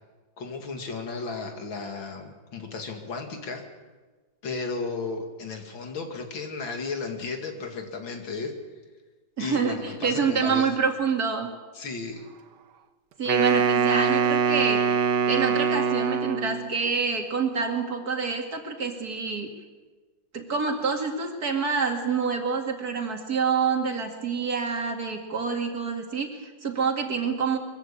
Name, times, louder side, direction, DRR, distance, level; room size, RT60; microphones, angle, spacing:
voice 1, 0.4-3.6 4.4-8.5 9.4-10.7 11.7-12.3, left 4 dB, 85° left, 4 dB, 3.1 m, -34 dB
voice 2, 9.4-11.5 13.2-14.8 15.3-19.5 20.3-27.6, right 5 dB, 55° right, 3 dB, 2.7 m, -27 dB
Wind instrument woodwind instrument, 13.3-16.7, right 6 dB, 70° right, 1.5 m, -23 dB
22.5 x 15.5 x 8.6 m, 1.3 s
omnidirectional pair, 2.1 m